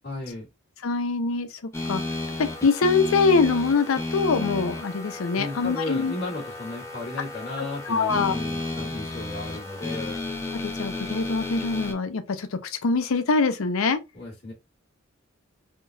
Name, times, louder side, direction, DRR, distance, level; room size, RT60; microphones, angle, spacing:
voice 1, 0.0-0.5 5.3-10.2 14.1-14.5, left 2 dB, 55° left, 1.6 m, -35 dB
voice 2, 0.8-1.6 1.9-2.0 2.4-6.1 7.6-8.4 10.6-14.0, left 4 dB, 85° left, 0.5 m, -24 dB
sound 1, 1.7-11.9, left 2 dB, 15° left, 0.6 m, -33 dB
3.7 x 2.2 x 2.6 m
head